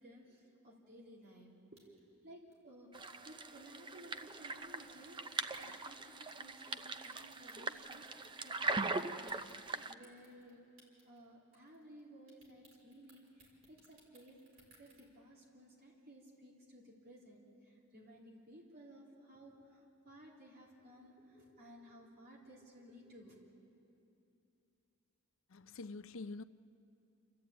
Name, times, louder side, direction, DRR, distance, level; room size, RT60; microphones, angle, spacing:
voice 1, 0.0-10.6 11.0-23.4, equal, 45° right, 3.3 m, -57 dB
sound 1, 1.8-2.1 2.5-2.6 3.3-3.5 4.0-4.2 4.8-5.0 5.5-5.7 6.3-6.5 7.0-8.3 8.5-9.7 10.0-10.5 10.8-11.2 11.5-12.0 12.3-15.0, right 3 dB, 75° right, 4.7 m, -63 dB
sound 2, 2.9-9.9, right 3 dB, 20° right, 0.5 m, -41 dB
voice 2, 25.5-26.4, left 3 dB, 65° left, 0.6 m, -46 dB
28.5 x 13.5 x 8.5 m
head